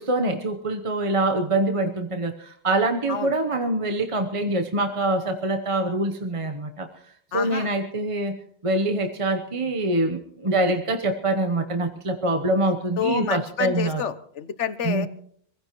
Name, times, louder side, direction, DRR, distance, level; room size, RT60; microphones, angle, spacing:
voice 1, 0.0-6.9 7.3-8.4 8.6-14.0 14.8-15.1, right 2 dB, 30° right, 5 dB, 1.0 m, -24 dB
voice 2, 7.3-7.7 13.0-15.1, left 7 dB, 85° left, 12 dB, 1.3 m, -28 dB
26.0 x 16.0 x 3.1 m, 0.63 s
omnidirectional pair, 1.2 m